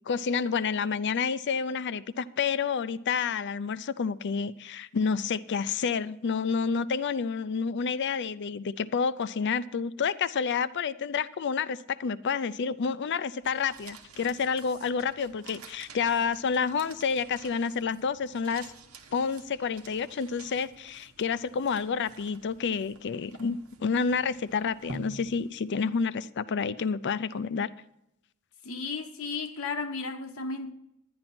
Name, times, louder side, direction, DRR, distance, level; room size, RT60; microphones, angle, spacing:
voice 1, 0.1-18.7 19.1-27.7, left 5 dB, 55° left, 0.5 m, -29 dB
sound 1, 13.4-26.0, right 3 dB, 90° right, 1.2 m, -50 dB
voice 2, 28.6-30.7, left 4 dB, 75° left, 1.0 m, -34 dB
11.0 x 10.5 x 4.3 m
head